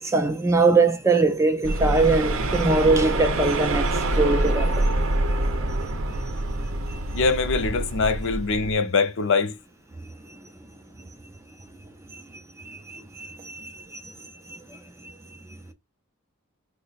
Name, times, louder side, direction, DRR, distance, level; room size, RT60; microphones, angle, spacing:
voice 1, 0.0-5.0 5.3-5.4 6.9-7.0 12.1-12.2 12.6-14.1 14.5-15.1, right 3 dB, 15° right, 0.3 m, -23 dB
sound 1, 1.6-8.7, right 1 dB, 60° right, 0.6 m, -26 dB
voice 2, 7.1-9.5, left 4 dB, 55° left, 0.5 m, -23 dB
3.3 x 2.0 x 3.8 m
head